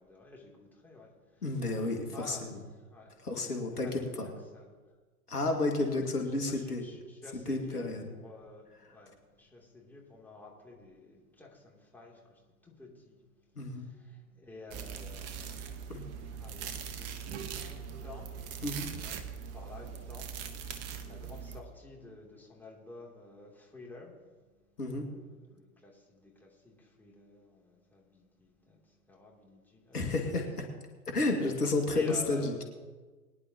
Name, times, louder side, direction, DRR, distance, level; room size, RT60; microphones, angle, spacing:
voice 1, 0.0-1.4 1.8-3.1 3.7-4.8 6.1-13.2 13.6-16.0 16.4-18.3 19.0-24.2 24.9-30.0 31.9-32.5, left 3 dB, 5° left, -3 dB, 2.8 m, -51 dB
voice 2, 1.4-2.6 3.2-4.3 5.3-6.8 7.5-8.0 13.6-13.9 15.9-16.0 18.6-18.9 24.8-25.1 29.9-30.7 31.1-32.7, left 2 dB, 85° left, 2 dB, 2.1 m, -31 dB
sound 1, 14.7-21.6, right 7 dB, 35° right, 1.2 m, -41 dB
22.5 x 10.5 x 2.9 m, 1.4 s
figure-of-eight pair, 100°, 45 cm